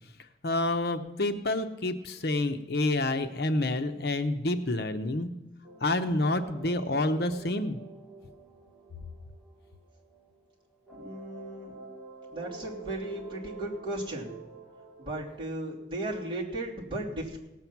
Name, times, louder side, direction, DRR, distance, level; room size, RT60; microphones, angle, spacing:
voice 1, 0.4-5.3 5.8-7.8, left 2 dB, 60° left, 8 dB, 0.8 m, -28 dB
sound 1, 5.6-10.5 10.9-15.4, right 4 dB, 5° right, 2.5 m, -48 dB
voice 2, 10.9-11.7 12.3-14.4 15.0-17.4, right 1 dB, 30° right, -5 dB, 2.8 m, -36 dB
18.0 x 7.7 x 5.8 m, 1.0 s
head